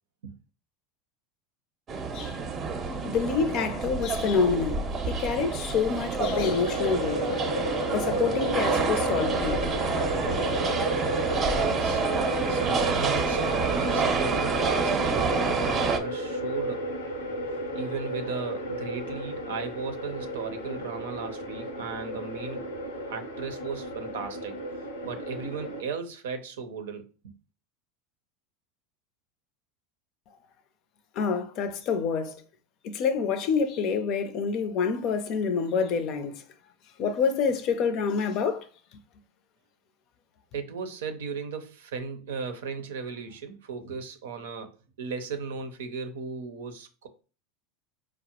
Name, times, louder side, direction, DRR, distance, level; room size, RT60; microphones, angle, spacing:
sound 1, 1.9-16.0, right 5 dB, 35° right, 0.6 m, -28 dB
voice 1, 3.0-7.2 7.9-9.6 31.2-32.4 32.8-36.3 37.0-38.7, left 5 dB, 50° left, 0.5 m, -27 dB
sound 2, 6.2-25.8, equal, 85° left, 0.8 m, -32 dB
voice 2, 11.5-12.0 12.5-16.8 17.7-22.7 23.1-24.5 25.0-27.0 40.5-44.7 45.0-47.1, right 5 dB, 80° right, 0.6 m, -36 dB
4.5 x 2.0 x 2.9 m
hypercardioid pair, 90°, 0 cm